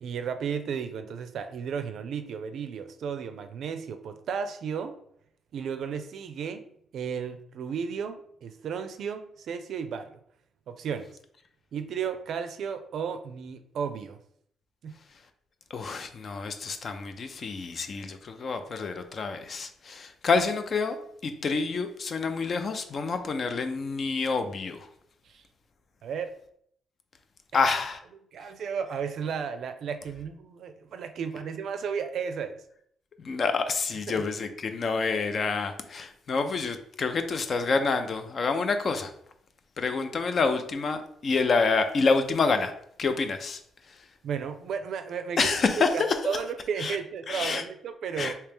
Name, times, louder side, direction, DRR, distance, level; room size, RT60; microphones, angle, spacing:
voice 1, 0.0-4.9 5.5-6.6 6.9-10.2 10.7-11.1 11.7-14.2 14.8-15.0 25.3-25.4 26.0-26.3 27.5-27.7 28.3-32.6 34.1-34.2 44.2-45.6 45.9-48.4, right 6 dB, 65° right, 8 dB, 0.4 m, -34 dB
voice 2, 15.7-21.0 21.2-24.9 27.5-28.0 33.2-39.1 39.8-42.7 43.0-43.6 45.4-46.0 46.8-47.0 47.3-47.6 48.2-48.3, left 4 dB, 45° left, 8 dB, 0.4 m, -27 dB
3.2 x 2.8 x 3.4 m, 0.67 s
cardioid pair, 90°, 0 cm